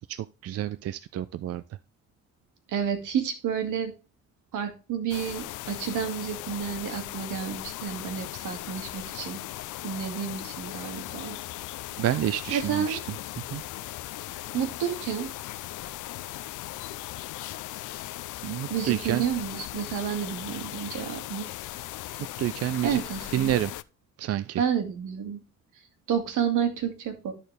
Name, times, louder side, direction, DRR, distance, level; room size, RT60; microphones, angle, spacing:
voice 1, 0.1-1.6 12.0-13.0 13.5-13.6 18.4-19.2 22.2-23.0 23.3-23.7 24.2-24.6, right 12 dB, 55° right, 0.5 m, -29 dB
voice 2, 2.7-3.9 4.5-9.4 9.8-11.4 12.0-12.1 12.5-13.0 14.5-15.3 18.7-21.5 22.8-23.7 24.6-25.4 25.7-27.3, right 8 dB, 80° right, 2.1 m, -30 dB
sound 1, 5.1-23.8, left 16 dB, 85° left, 0.5 m, -38 dB
13.0 x 4.4 x 3.3 m
cardioid pair, 90°, 30 cm